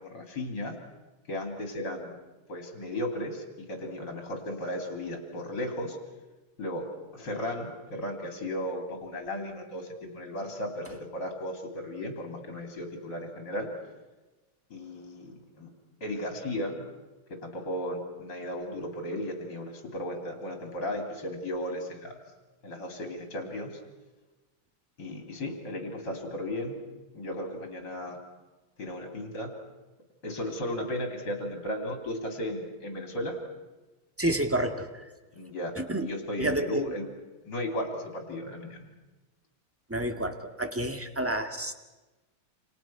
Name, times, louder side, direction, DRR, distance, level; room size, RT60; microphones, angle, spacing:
voice 1, 0.1-0.7 1.3-2.2 2.5-3.4 3.7-6.0 6.6-6.9 7.1-13.7 14.7-15.7 16.0-16.8 17.3-22.1 22.6-23.7 25.0-26.8 27.1-28.2 28.8-29.5 30.2-33.4 35.3-35.7 36.0-37.0 37.4-38.9, left 1 dB, 55° left, 3 dB, 4.3 m, -35 dB
voice 2, 34.2-35.1 35.7-36.1 36.4-36.9 39.9-41.7, right 1 dB, 5° right, 6 dB, 1.7 m, -29 dB
29.0 x 27.0 x 6.1 m, 1.2 s
omnidirectional pair, 2.2 m